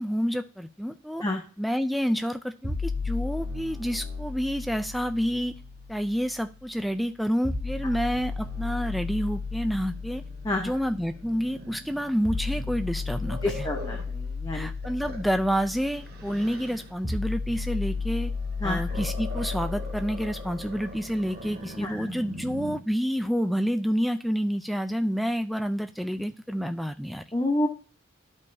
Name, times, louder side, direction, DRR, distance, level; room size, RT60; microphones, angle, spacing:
voice 1, 0.0-1.2 1.6-5.6 5.9-10.2 10.6-13.7 14.5-18.3 18.6-27.2, equal, ahead, 8 dB, 0.4 m, -29 dB
sound 1, 2.6-6.6 7.4-21.5, left 4 dB, 25° right, 2.9 m, -34 dB
Growling, 8.3-14.2 14.6-16.9 18.4-22.8, equal, 45° right, 1.4 m, -43 dB
voice 2, 13.4-14.7 18.6-18.8 21.8-21.9 27.3-27.7, left 1 dB, 15° left, 1 dB, 0.9 m, -28 dB
11.5 x 5.3 x 2.7 m, 0.37 s
head